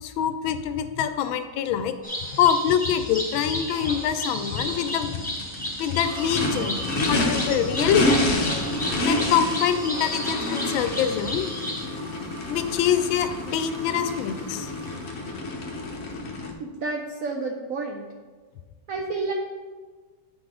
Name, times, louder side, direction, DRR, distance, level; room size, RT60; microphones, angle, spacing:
voice 1, 0.0-1.9 2.3-5.2 5.8-6.8 7.1-8.1 9.0-11.5 12.5-14.7, left 9 dB, 85° left, 10 dB, 1.4 m, -24 dB
sound 1, 2.0-11.9, equal, 5° left, 0.7 m, -33 dB
Race car auto racing / Idling / Accelerating revving vroom, 4.5-16.5, left 1 dB, 50° left, 0.8 m, -29 dB
sound 2, 6.0-16.0, right 1 dB, 60° right, 1.4 m, -46 dB
voice 2, 16.6-18.1 18.9-19.3, right 3 dB, 80° right, 1 dB, 0.7 m, -30 dB
8.5 x 4.0 x 4.8 m, 1.4 s
omnidirectional pair, 2.1 m